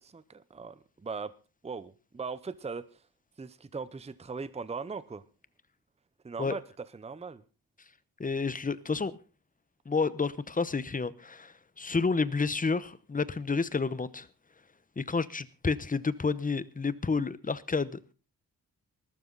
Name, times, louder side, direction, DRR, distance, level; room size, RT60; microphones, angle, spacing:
voice 1, 0.0-1.3 1.6-3.0 3.4-5.2 6.2-7.4, right 4 dB, 20° right, 0.7 m, -39 dB
voice 2, 8.2-9.1 9.9-14.3 15.0-18.1, left 4 dB, 25° left, 0.9 m, -30 dB
19.5 x 12.5 x 4.0 m
wide cardioid pair, 130°, 36 cm